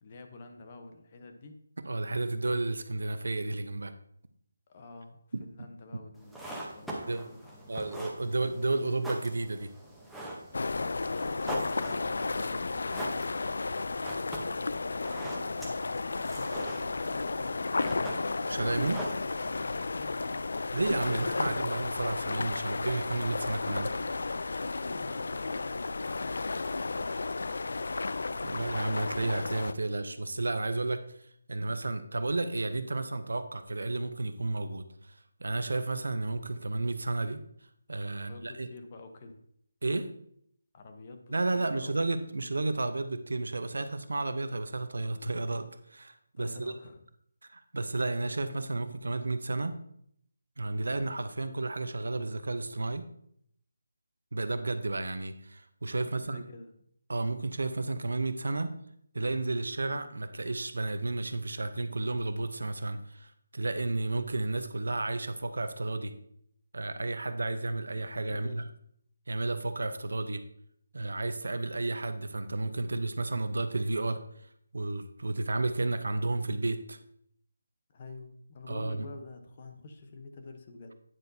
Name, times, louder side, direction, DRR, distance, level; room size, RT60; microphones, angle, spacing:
voice 1, 0.0-1.6 4.7-7.8 11.5-13.9 14.7-17.7 19.7-20.4 24.8-26.1 38.1-39.4 40.7-41.9 46.4-47.1 56.0-56.7 68.3-68.6 77.9-81.0, left 3 dB, 35° left, 6 dB, 0.9 m, -49 dB
voice 2, 1.9-3.9 5.3-5.7 7.1-7.2 7.7-9.7 18.5-19.0 20.7-23.9 28.4-31.0 31.5-37.4 37.9-38.7 39.8-40.1 41.3-46.7 47.5-49.7 50.6-53.0 54.3-56.4 57.1-58.7 59.1-66.1 66.7-68.6 69.3-70.4 70.9-74.2 74.7-77.0 78.7-79.1, right 2 dB, 80° right, 10 dB, 0.8 m, -32 dB
sound 1, 6.2-19.8, right 1 dB, ahead, 0.9 m, -43 dB
sound 2, 10.5-29.7, left 3 dB, 70° left, 0.3 m, -33 dB
9.1 x 7.8 x 2.8 m, 0.70 s
figure-of-eight pair, 165°, 0 cm